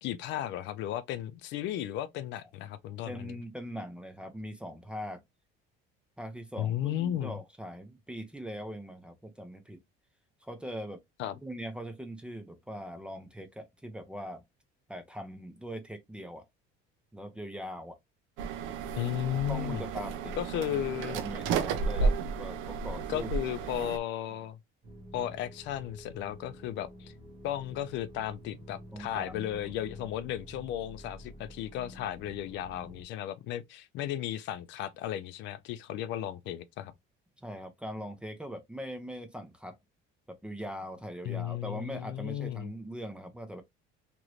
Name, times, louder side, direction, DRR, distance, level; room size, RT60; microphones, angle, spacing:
voice 1, 0.0-3.4 6.6-7.4 11.2-11.3 19.0-19.8 20.4-21.2 22.0-22.1 23.1-24.6 25.1-27.1 27.4-36.9 41.2-42.7, left 11 dB, 60° left, 0.4 m, -35 dB
voice 2, 3.1-5.2 6.2-9.8 10.4-11.0 11.4-14.4 14.9-16.5 17.1-18.0 19.5-20.3 20.7-22.1 22.4-23.3 24.3-24.4 28.9-29.7 37.4-39.8 40.3-43.6, equal, 5° right, 0.4 m, -41 dB
sound 1, 18.4-24.0, right 5 dB, 65° right, 0.6 m, -32 dB
sound 2, 24.8-33.0, equal, 25° right, 1.0 m, -50 dB
3.0 x 2.5 x 3.0 m
cardioid pair, 150°, 21 cm